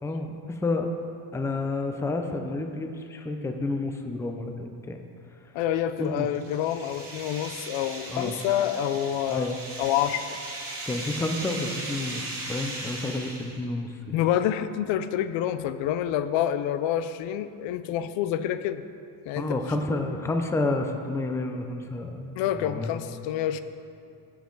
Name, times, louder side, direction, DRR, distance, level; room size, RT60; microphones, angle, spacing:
voice 1, 0.0-0.9 1.3-5.0 6.0-6.3 8.1-8.4 9.3-9.6 10.9-12.2 12.5-14.2 19.4-23.0, left 2 dB, 5° left, 5 dB, 0.5 m, -30 dB
voice 2, 5.5-10.4 14.1-18.8 19.3-19.6 22.4-23.6, left 10 dB, 70° left, 12 dB, 0.6 m, -27 dB
sound 1, 5.9-13.6, right 2 dB, 30° right, 2.4 m, -38 dB
15.5 x 7.3 x 3.9 m, 2.5 s
cardioid pair, 140°, 47 cm